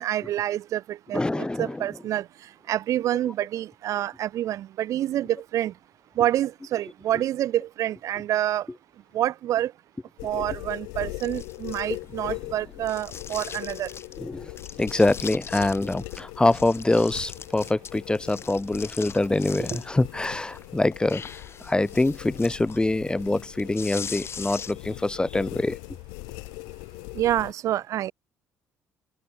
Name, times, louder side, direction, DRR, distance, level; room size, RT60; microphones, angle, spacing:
voice 1, 0.0-2.2 2.7-5.7 6.2-8.7 9.1-9.7 10.2-13.9 19.6-19.8 27.2-28.1, right 12 dB, 55° right, 0.6 m, -27 dB
voice 2, 1.1-1.8 14.2-14.5 14.8-21.2 21.6-25.8, left 2 dB, 15° left, 1.1 m, -24 dB
sound 1, 10.2-27.5, left 33 dB, 70° left, 5.9 m, -40 dB
sound 2, 11.2-12.2 12.8-14.2 14.6-16.2 16.5-20.0 20.4-25.0, left 6 dB, 40° left, 3.4 m, -41 dB
figure-of-eight pair, 50°, 7 cm